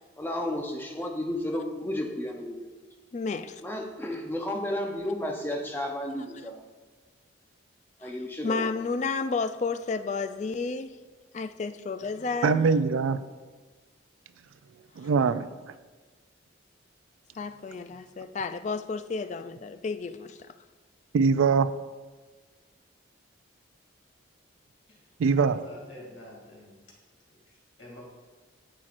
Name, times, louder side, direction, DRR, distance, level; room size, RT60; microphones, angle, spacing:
voice 1, 0.2-2.6 3.6-6.6 8.0-8.7, left 1 dB, 10° left, 0.7 m, -32 dB
voice 2, 3.1-3.6 8.0-8.1 8.4-10.9 11.3-12.6 17.3-20.4, left 4 dB, 35° left, 0.3 m, -31 dB
voice 3, 12.4-13.2 15.0-15.5 21.1-21.7 25.2-25.6, right 5 dB, 85° right, 0.4 m, -22 dB
voice 4, 25.4-26.7 27.4-28.0, left 1 dB, 60° left, 2.5 m, -47 dB
10.0 x 7.4 x 2.5 m
head